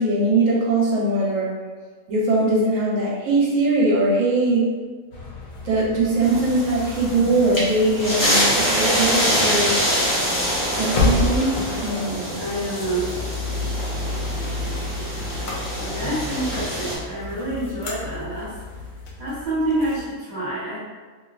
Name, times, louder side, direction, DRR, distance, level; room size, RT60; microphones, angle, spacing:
voice 1, 0.0-1.5 2.1-4.7 5.6-9.8 10.7-11.6 11.8-12.3, right 2 dB, 65° right, -4 dB, 1.0 m, -21 dB
sound 1, 5.1-20.1, left 3 dB, 90° left, 1.1 m, -31 dB
sound 2, 6.2-17.0, equal, 20° left, 0.6 m, -25 dB
voice 2, 12.3-13.2 15.8-18.5 19.2-20.8, right 1 dB, 35° right, -12 dB, 1.1 m, -27 dB
3.0 x 2.6 x 2.4 m, 1.4 s
omnidirectional pair, 1.5 m